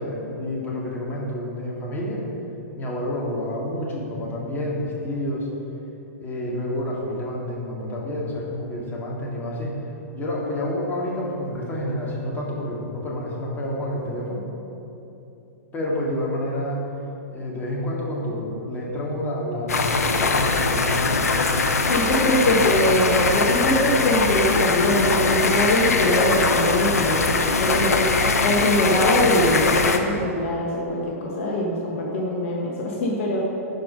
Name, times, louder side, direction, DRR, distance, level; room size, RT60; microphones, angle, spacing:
voice 1, 0.0-2.2 2.7-5.5 6.2-9.7 10.1-14.4 15.7-16.8 17.3-21.3, left 1 dB, 20° left, -4 dB, 2.1 m, -29 dB
sound 1, 19.7-30.0, left 3 dB, 75° left, 0.7 m, -21 dB
voice 2, 21.9-28.1 28.4-33.4, left 1 dB, 55° left, -2 dB, 1.3 m, -22 dB
10.5 x 5.2 x 5.3 m, 3.0 s
figure-of-eight pair, 110°, 8 cm